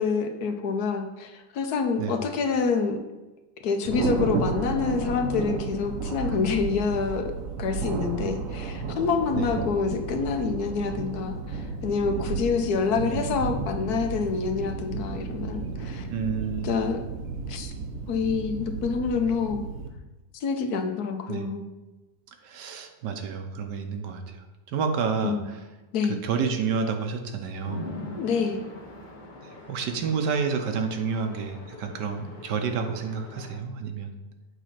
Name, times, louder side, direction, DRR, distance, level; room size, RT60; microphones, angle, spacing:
voice 1, 0.0-3.0 3.6-7.3 7.6-16.1 16.6-17.0 17.5-17.7 18.1-19.6 20.3-21.7 25.2-25.5 25.9-26.2 28.2-28.6, left 5 dB, 65° left, 6 dB, 1.1 m, -27 dB
Thunder, 3.8-19.9, right 4 dB, 60° right, 1.0 m, -33 dB
voice 2, 13.0-13.4 16.1-16.8 21.3-21.5 22.4-24.4 24.7-25.6 26.1-27.8 29.7-34.2, right 5 dB, 75° right, 5 dB, 1.4 m, -29 dB
Chatter / Traffic noise roadway noise / Train, 27.6-33.6, left 1 dB, 35° left, 0.8 m, -42 dB
8.2 x 4.0 x 5.7 m, 1.1 s
omnidirectional pair, 1.9 m